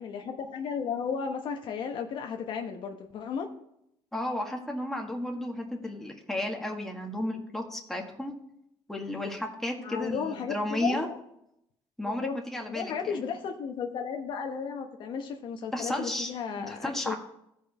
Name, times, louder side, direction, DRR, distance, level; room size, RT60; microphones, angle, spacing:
voice 1, 0.0-3.5 9.8-11.2 12.1-12.4 12.7-17.1, left 6 dB, 60° left, 4 dB, 1.0 m, -34 dB
voice 2, 4.1-8.3 8.9-11.1 12.0-13.2 15.7-17.2, left 1 dB, 5° left, 1 dB, 1.7 m, -33 dB
15.0 x 5.2 x 4.2 m, 0.78 s
cardioid pair, 115°, 9 cm